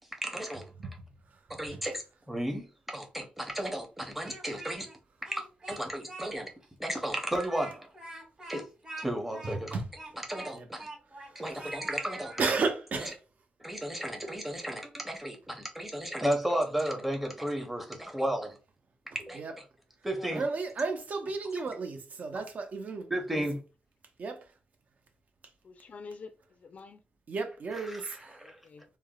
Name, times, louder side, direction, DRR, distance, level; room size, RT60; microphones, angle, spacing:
voice 1, 0.2-0.7 1.6-4.9 5.3-6.5 6.8-7.9 8.5-8.7 9.0-9.8 10.1-10.9 11.3-12.3 13.0-13.1 13.6-18.6 19.1-19.4 20.0-20.4 22.3-22.4 23.1-23.6 27.7-28.6, right 1 dB, 5° right, 0.7 m, -34 dB
Speech, 4.0-4.9 5.2-6.3 6.6-6.7 7.2-11.3 11.6-12.5, right 2 dB, 30° right, 1.0 m, -45 dB
voice 2, 12.4-13.2 19.4-19.5 20.4-23.4 24.2-24.4 27.3-28.4, right 4 dB, 50° right, 0.5 m, -33 dB
voice 3, 25.6-27.0 28.4-28.8, left 4 dB, 45° left, 0.4 m, -47 dB
3.2 x 2.0 x 2.3 m
wide cardioid pair, 140°, 3 cm